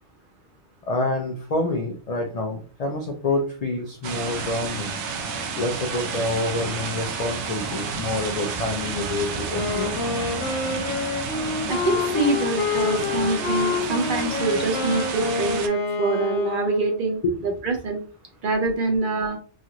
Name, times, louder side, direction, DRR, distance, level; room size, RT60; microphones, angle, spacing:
voice 1, 0.8-5.0 5.6-10.0 17.2-17.4, left 2 dB, 65° left, 3 dB, 0.3 m, -27 dB
sound 1, 4.0-15.7, right 5 dB, 85° right, 0.9 m, -30 dB
Wind instrument woodwind instrument, 9.5-17.1, left 5 dB, 80° left, 1.1 m, -27 dB
voice 2, 11.7-18.0 18.4-19.4, right 3 dB, 50° right, 3 dB, 0.8 m, -25 dB
3.0 x 2.5 x 2.8 m, 0.41 s
omnidirectional pair, 1.2 m